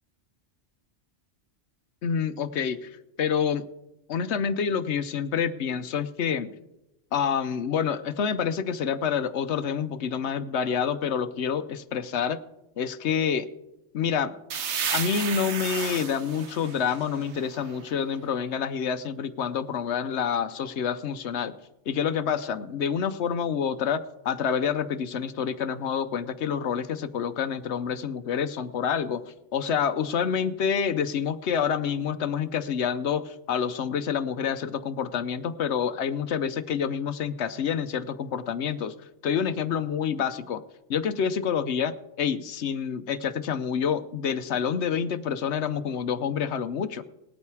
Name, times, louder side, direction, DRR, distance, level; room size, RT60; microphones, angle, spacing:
voice 1, 2.0-2.9 3.2-3.6 4.1-6.5 7.1-12.4 12.8-13.5 13.9-14.3 14.9-21.5 21.9-29.2 29.5-38.9 39.2-40.6 40.9-47.0, left 7 dB, 65° left, 12 dB, 0.9 m, -27 dB
sound 1, 14.5-18.1, right 7 dB, 65° right, 1.2 m, -33 dB
19.5 x 8.7 x 4.7 m, 0.93 s
omnidirectional pair, 1.3 m